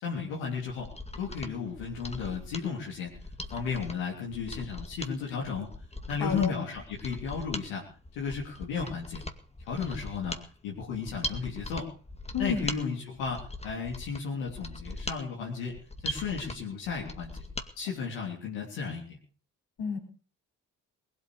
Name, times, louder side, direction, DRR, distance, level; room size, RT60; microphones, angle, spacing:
voice 1, 0.0-3.1 3.5-5.7 6.1-7.8 8.2-9.2 9.7-10.4 10.6-11.9 12.4-15.8 16.0-17.3 17.8-19.2, left 5 dB, 80° left, -3 dB, 3.5 m, -34 dB
Mechanisms, 0.8-17.7 18.0-18.1, left 1 dB, 15° left, 2.2 m, -41 dB
voice 2, 6.2-6.5 12.3-12.7 19.8-20.0, left 6 dB, 55° left, 2 dB, 4.5 m, -30 dB
20.0 x 8.6 x 7.0 m, 0.41 s
hypercardioid pair, 40°, 46 cm